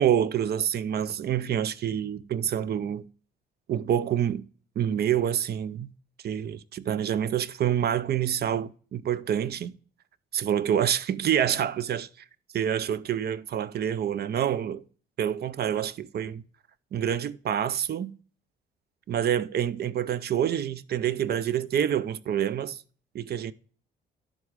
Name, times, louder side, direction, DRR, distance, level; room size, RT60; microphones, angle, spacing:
voice 1, 0.0-3.1 3.7-4.5 4.8-5.9 6.2-9.7 10.3-12.1 12.5-14.8 15.2-16.4 16.9-18.2 19.1-22.8 23.1-23.5, right 9 dB, 55° right, 0.5 m, -27 dB
11.0 x 3.7 x 4.7 m
cardioid pair, 90°, 20 cm